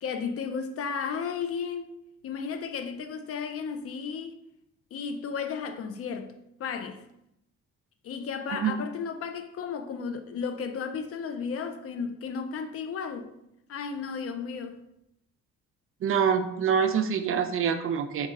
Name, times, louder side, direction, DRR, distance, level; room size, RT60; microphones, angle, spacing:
voice 1, 0.0-1.9 2.2-4.4 4.9-6.3 6.6-7.0 8.0-13.3 13.7-14.8, left 6 dB, 50° left, 0.5 m, -34 dB
voice 2, 16.0-18.3, right 7 dB, 45° right, 0.5 m, -25 dB
4.0 x 2.4 x 3.8 m
cardioid pair, 90°, 30 cm